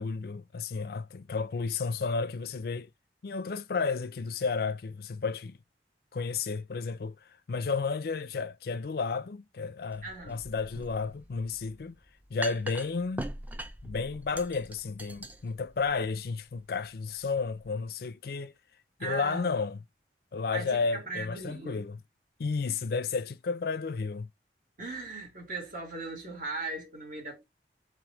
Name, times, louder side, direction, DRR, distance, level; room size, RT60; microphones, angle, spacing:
voice 1, 0.0-2.9 3.2-5.6 6.1-7.2 7.5-12.0 12.3-13.3 13.8-18.5 19.0-19.8 20.3-22.0 22.4-24.3, left 4 dB, 60° left, 0.4 m, -32 dB
sound 1, 9.9-17.7, right 1 dB, 10° right, 0.4 m, -43 dB
voice 2, 10.0-10.4 19.0-19.6 20.5-21.9 24.8-27.4, right 3 dB, 50° right, 1.9 m, -38 dB
3.4 x 3.2 x 3.5 m
head